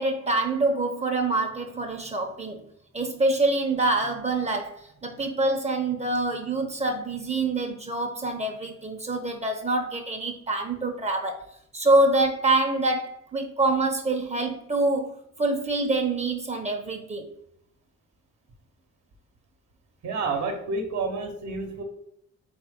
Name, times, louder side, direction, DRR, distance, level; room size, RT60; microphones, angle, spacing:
voice 1, 0.0-2.7 2.9-11.4 11.7-17.3, right 2 dB, 20° right, 4 dB, 0.7 m, -26 dB
voice 2, 20.0-21.8, right 3 dB, 60° right, 3 dB, 1.0 m, -29 dB
4.3 x 3.2 x 3.6 m, 0.72 s
cardioid pair, 90°, 30 cm